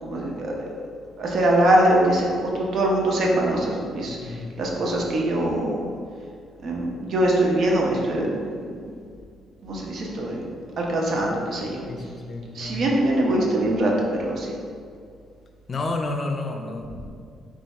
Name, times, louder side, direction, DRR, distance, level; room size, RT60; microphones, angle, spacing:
voice 1, 0.0-0.5 1.2-2.3 2.5-5.8 6.6-8.5 9.6-10.5 10.8-11.8 12.5-14.5, right 1 dB, 60° right, -2 dB, 0.7 m, -23 dB
voice 2, 4.1-4.6 11.9-12.8 15.7-17.1, left 2 dB, 40° left, 4 dB, 0.4 m, -31 dB
3.3 x 2.4 x 4.1 m, 2.2 s
cardioid pair, 90°, 0 cm